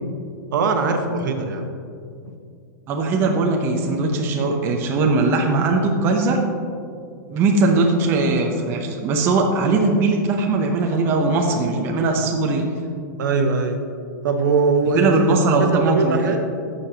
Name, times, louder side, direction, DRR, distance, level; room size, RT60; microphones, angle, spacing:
voice 1, 0.5-1.7 2.3-2.4 13.2-13.8 14.2-16.5, right 4 dB, 75° right, 5 dB, 1.1 m, -21 dB
voice 2, 2.9-6.4 7.3-12.6 14.9-16.3, right 3 dB, 20° right, 1 dB, 0.7 m, -20 dB
12.5 x 6.7 x 2.8 m, 2.3 s
supercardioid pair, 160°, 10 cm